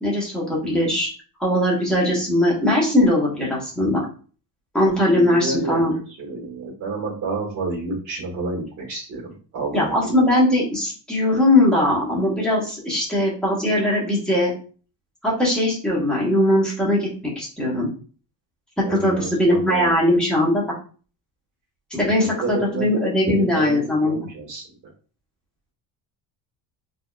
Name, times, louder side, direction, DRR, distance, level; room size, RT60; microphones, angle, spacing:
voice 1, 0.0-1.1 1.4-4.1 4.7-5.9 9.7-14.5 15.2-17.9 18.9-20.6 21.9-24.3, left 1 dB, ahead, -6 dB, 1.1 m, -20 dB
voice 2, 4.8-10.1 18.8-20.2 22.0-22.1 22.4-22.9 23.2-24.6, right 3 dB, 45° right, -6 dB, 1.4 m, -30 dB
4.3 x 2.9 x 2.2 m, 0.39 s
cardioid pair, 160°, 39 cm